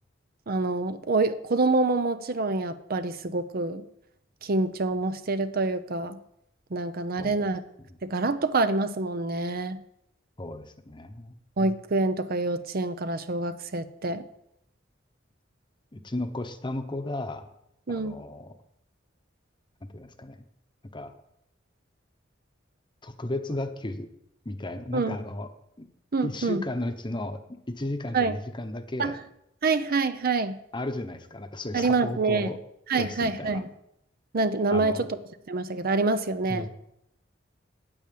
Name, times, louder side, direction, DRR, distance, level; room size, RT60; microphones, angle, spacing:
voice 1, 0.5-3.8 4.4-6.2 6.7-7.6 8.0-9.8 11.6-14.2 17.9-18.2 24.9-25.2 26.1-26.6 28.1-28.4 29.0-29.1 29.6-30.6 31.7-32.5 32.9-33.7 34.3-35.2 35.5-36.7, right 3 dB, 50° right, 11 dB, 0.7 m, -26 dB
voice 2, 10.4-11.3 15.9-17.5 17.9-18.5 19.9-20.4 20.9-21.1 23.0-24.1 24.4-25.5 25.8-25.9 26.2-29.2 30.7-32.6 32.9-33.6 34.7-35.1 36.4-36.7, left 1 dB, 25° left, 8 dB, 0.9 m, -34 dB
8.9 x 8.9 x 7.6 m, 0.79 s
head